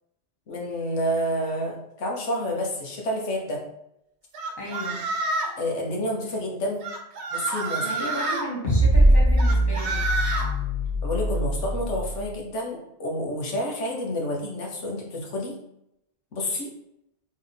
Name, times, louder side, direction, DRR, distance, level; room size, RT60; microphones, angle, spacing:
voice 1, 0.5-3.6 5.6-6.9 7.3-7.9 11.0-15.6 16.3-16.7, equal, 85° left, 0 dB, 1.3 m, -29 dB
sound 1, 4.3-5.6 6.8-8.5 9.4-10.5, right 3 dB, 70° right, 1.0 m, -28 dB
voice 2, 4.6-5.1 7.8-10.0, equal, 20° left, -4 dB, 1.1 m, -34 dB
sound 2, 8.6-12.1, right 1 dB, 45° left, 1.3 m, -21 dB
3.6 x 3.2 x 3.9 m, 0.81 s
omnidirectional pair, 1.2 m